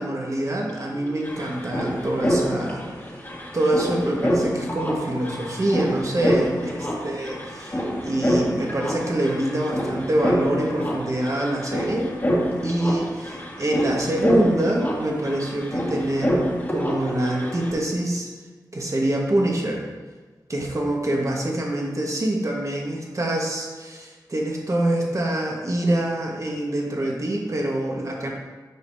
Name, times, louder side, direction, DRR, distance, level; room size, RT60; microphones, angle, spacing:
voice 1, 0.0-2.8 3.5-7.4 7.7-12.1 12.6-16.4 16.7-18.3 18.7-19.8 20.5-28.3, right 1 dB, 45° right, -1 dB, 1.4 m, -25 dB
sound 1, 0.7-0.8 0.9-17.7, equal, 30° left, 1.7 m, -27 dB
8.0 x 5.2 x 2.7 m, 1.3 s
cardioid pair, 40°, 7 cm